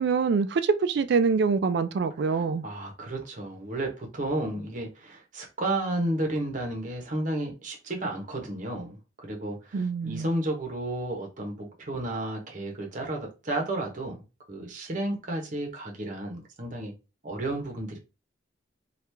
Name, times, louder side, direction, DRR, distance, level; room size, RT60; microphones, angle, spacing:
voice 1, 0.0-2.6 9.7-10.3, right 5 dB, 60° right, 0.3 m, -25 dB
voice 2, 2.3-14.2 14.5-16.9 17.2-18.0, right 1 dB, 45° right, 0.9 m, -32 dB
3.0 x 2.4 x 3.3 m
head